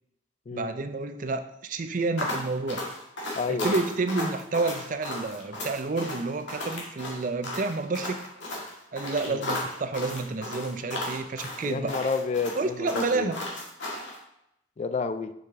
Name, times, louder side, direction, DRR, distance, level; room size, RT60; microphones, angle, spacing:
voice 1, 0.5-2.8 3.5-8.3 8.9-12.0 12.5-13.4, right 3 dB, 45° right, 9 dB, 0.4 m, -30 dB
sound 1, 2.2-14.2, left 1 dB, 75° left, 1.8 m, -34 dB
voice 2, 3.4-3.8 9.3-9.4 11.6-13.3 14.8-15.3, left 4 dB, 35° left, 11 dB, 0.3 m, -30 dB
6.6 x 4.9 x 3.6 m, 0.82 s
head